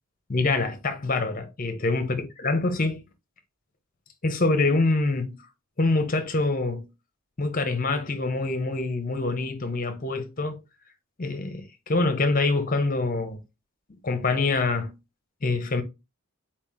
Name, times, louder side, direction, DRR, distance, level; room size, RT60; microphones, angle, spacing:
voice 1, 0.3-3.0 4.2-5.4 5.8-6.9 7.4-10.6 11.2-13.4 14.0-14.9 15.4-15.8, left 3 dB, 40° left, 0.8 m, -25 dB
4.4 x 3.0 x 3.6 m
head